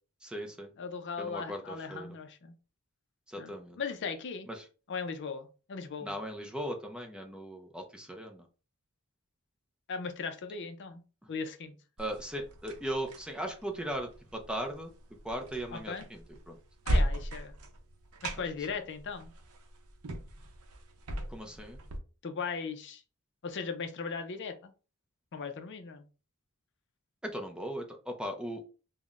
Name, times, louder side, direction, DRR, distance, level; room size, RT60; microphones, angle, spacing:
voice 1, 0.2-0.7 1.2-2.1 3.3-3.8 4.5-4.7 6.0-8.5 11.2-11.3 12.0-14.9 15.2-16.2 16.5-16.6 21.3-21.8 27.2-28.8, equal, 5° right, 3 dB, 0.5 m, -38 dB
voice 2, 0.8-2.5 3.4-4.5 4.9-6.1 9.9-11.0 11.3-11.8 15.7-16.1 16.9-17.5 18.2-19.3 22.2-23.0 23.4-24.7 25.3-26.0, left 5 dB, 55° left, 8 dB, 0.5 m, -38 dB
sound 1, 12.0-22.0, equal, 75° right, 0.7 m, -37 dB
5.5 x 2.1 x 2.4 m, 0.35 s
head